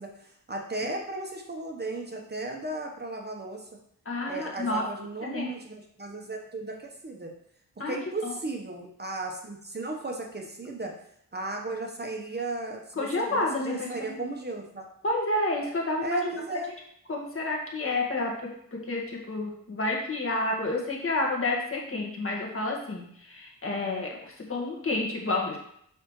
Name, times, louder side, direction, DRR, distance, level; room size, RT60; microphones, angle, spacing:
voice 1, 0.0-3.7 4.3-7.3 7.8-10.9 11.3-14.8 16.0-16.7, right 2 dB, 30° right, 1 dB, 1.2 m, -35 dB
voice 2, 4.1-4.8 5.2-5.5 7.8-8.0 8.2-8.3 13.0-14.1 15.0-16.3 17.1-25.6, left 2 dB, 40° left, -1 dB, 1.8 m, -30 dB
7.0 x 5.7 x 3.2 m, 0.69 s
cardioid pair, 80°, 33 cm